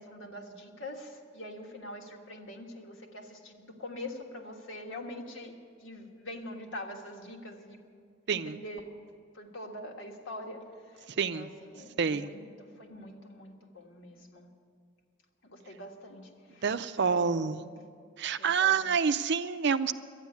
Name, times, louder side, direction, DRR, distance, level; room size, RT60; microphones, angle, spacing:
voice 1, 0.0-5.5 5.8-7.8 8.3-8.9 9.3-10.6 11.3-11.5 11.7-14.5 15.4-16.6 17.0-17.8 18.6-18.9, left 1 dB, 85° left, 2 dB, 1.6 m, -44 dB
voice 2, 11.1-11.5 12.0-12.3 16.6-17.6 18.2-19.9, right 6 dB, 60° right, 12 dB, 0.5 m, -28 dB
12.5 x 9.5 x 9.5 m, 2.2 s
head